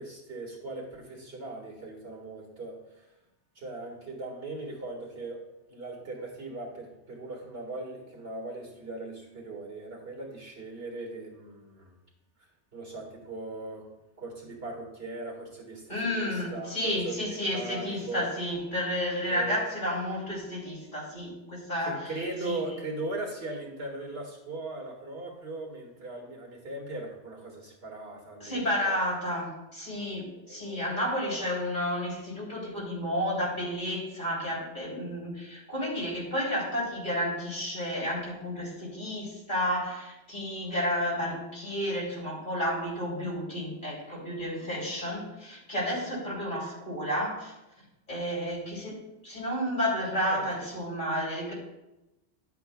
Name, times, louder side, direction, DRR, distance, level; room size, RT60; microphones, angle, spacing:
voice 1, 0.0-3.1 3.6-5.4 5.7-11.9 12.7-13.9 14.2-18.3 19.2-19.7 21.8-29.0 30.5-31.5 50.2-50.4, right 2 dB, 60° right, -1 dB, 2.1 m, -39 dB
voice 2, 15.9-22.1 22.4-22.6 28.4-47.5 48.1-51.5, equal, 45° left, -5 dB, 3.4 m, -31 dB
11.5 x 8.3 x 2.3 m, 0.95 s
omnidirectional pair, 1.2 m